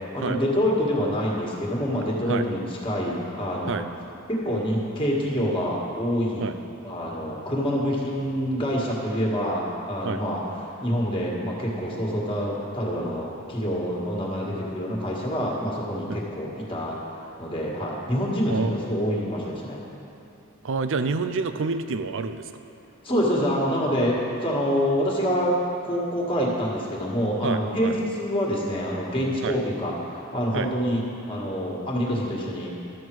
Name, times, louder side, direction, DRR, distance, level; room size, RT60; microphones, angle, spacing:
voice 1, 0.1-3.8 4.3-6.5 6.8-10.4 10.8-17.0 17.4-19.8 23.0-25.5 25.8-32.8, equal, 25° left, -3 dB, 1.7 m, -26 dB
voice 2, 20.6-22.5 27.4-28.0 29.4-29.6 30.5-30.7, right 4 dB, 65° right, 10 dB, 0.5 m, -28 dB
12.5 x 7.4 x 4.6 m, 2.9 s
head